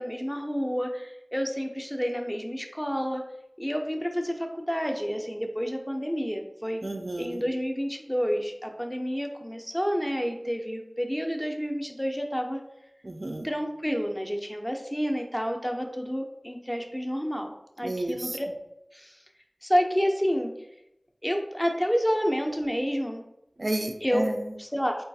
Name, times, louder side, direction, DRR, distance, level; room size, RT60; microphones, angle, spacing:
voice 1, 0.0-3.3 3.6-6.8 7.2-12.6 13.4-17.5 17.8-18.5 18.9-19.2 19.6-20.5 21.2-23.2 24.0-24.3 24.6-25.1, equal, 10° left, 2 dB, 0.4 m, -29 dB
voice 2, 6.8-7.4 13.0-13.5 17.8-18.4 23.6-24.5, right 1 dB, 60° right, 4 dB, 0.3 m, -31 dB
3.8 x 2.3 x 2.6 m, 0.84 s
wide cardioid pair, 45°, 0 cm